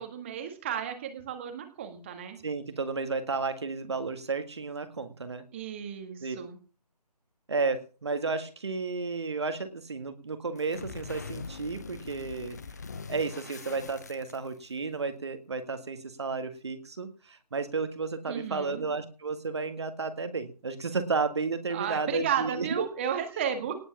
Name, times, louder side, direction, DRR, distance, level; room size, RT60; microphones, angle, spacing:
voice 1, 0.0-2.4 5.5-6.6 18.3-18.8 21.7-23.8, right 8 dB, 15° right, 6 dB, 1.7 m, -33 dB
voice 2, 2.4-5.5 6.2-6.4 7.5-12.6 13.1-22.8, right 4 dB, 40° right, 9 dB, 1.8 m, -32 dB
sound 1, 10.6-14.8, left 5 dB, 25° left, 0.9 m, -42 dB
18.5 x 8.1 x 7.2 m, 0.37 s
figure-of-eight pair, 155°, 21 cm